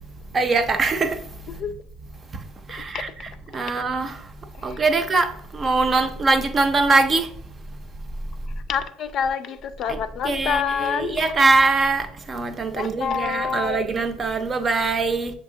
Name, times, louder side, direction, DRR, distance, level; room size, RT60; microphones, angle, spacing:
voice 1, 0.3-1.2 2.7-3.1 3.5-4.1 4.6-5.3 5.5-7.3 10.2-15.3, right 3 dB, 35° right, 0.6 m, -22 dB
voice 2, 8.7-11.2 12.7-13.9, left 7 dB, 55° left, 0.4 m, -27 dB
6.7 x 2.8 x 2.7 m
hypercardioid pair, 70°, 0 cm